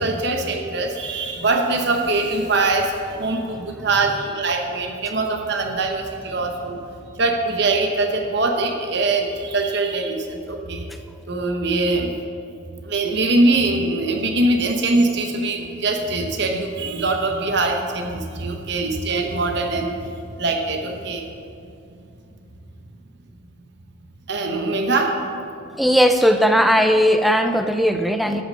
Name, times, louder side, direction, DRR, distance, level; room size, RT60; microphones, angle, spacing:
voice 1, 0.0-6.8 7.2-10.8 11.3-12.2 12.8-20.1 20.4-21.3 24.3-25.2, right 2 dB, 55° right, 4 dB, 1.0 m, -22 dB
voice 2, 25.8-28.4, equal, ahead, 7 dB, 0.5 m, -17 dB
12.5 x 6.8 x 7.6 m, 2.6 s
head